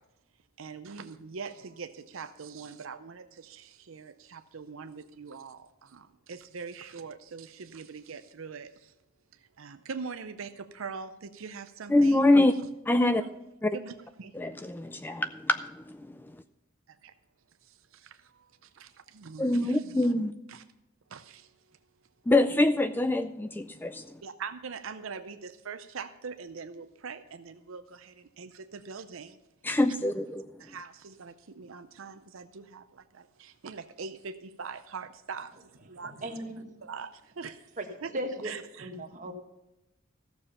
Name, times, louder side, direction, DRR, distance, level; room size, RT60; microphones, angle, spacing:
voice 1, 0.6-8.9 9.6-12.2 13.1-13.3 13.7-14.3 17.0-17.1 17.7-20.1 20.5-20.6 21.1-21.5 24.2-29.4 30.6-36.3 36.8-37.6 38.0-38.1 38.4-38.9, right 5 dB, 70° right, 10 dB, 0.6 m, -43 dB
voice 2, 11.9-12.5 12.9-13.2 13.6-13.7 14.3-16.0 19.4-20.3 22.3-24.0 29.6-30.4, left 2 dB, 10° left, 11 dB, 0.3 m, -24 dB
voice 3, 36.0-36.7 37.8-37.9 38.1-38.5 38.8-39.3, right 1 dB, 40° right, 3 dB, 1.4 m, -36 dB
14.0 x 7.0 x 5.5 m, 0.89 s
head